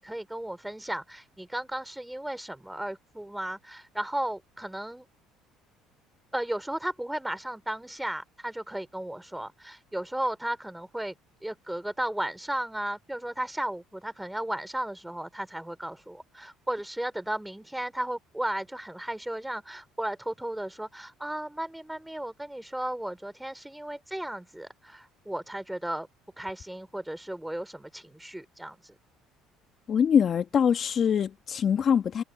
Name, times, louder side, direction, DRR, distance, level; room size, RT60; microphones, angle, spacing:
voice 1, 0.0-5.1 6.3-11.1 11.4-26.1 26.4-29.0, right 1 dB, 5° right, 3.5 m, -35 dB
voice 2, 29.9-32.2, left 7 dB, 45° left, 1.5 m, -23 dB
supercardioid pair, 80°, 0 cm